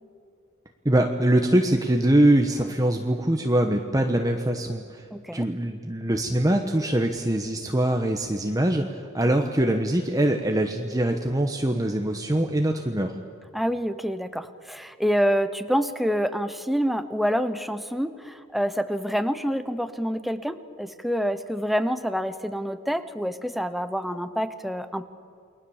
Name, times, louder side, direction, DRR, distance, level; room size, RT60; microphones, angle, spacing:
voice 1, 0.8-5.1 5.3-13.1, right 1 dB, 15° right, 4 dB, 1.2 m, -23 dB
voice 2, 5.1-5.5 13.5-25.0, equal, ahead, 10 dB, 0.9 m, -27 dB
29.0 x 22.0 x 7.3 m, 2.6 s
head